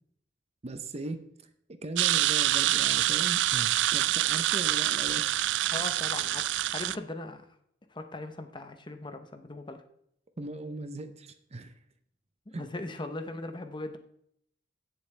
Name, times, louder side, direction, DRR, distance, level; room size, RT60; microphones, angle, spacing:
voice 1, 0.6-1.5 1.8-5.3 10.4-11.7 12.5-12.7, right 2 dB, 35° right, 10 dB, 0.8 m, -38 dB
sound 1, 2.0-7.0, right 14 dB, 75° right, 0.3 m, -26 dB
voice 2, 5.7-7.5 7.9-9.8 12.5-14.0, left 2 dB, 25° left, 7 dB, 0.9 m, -39 dB
16.5 x 7.2 x 3.3 m, 0.71 s
head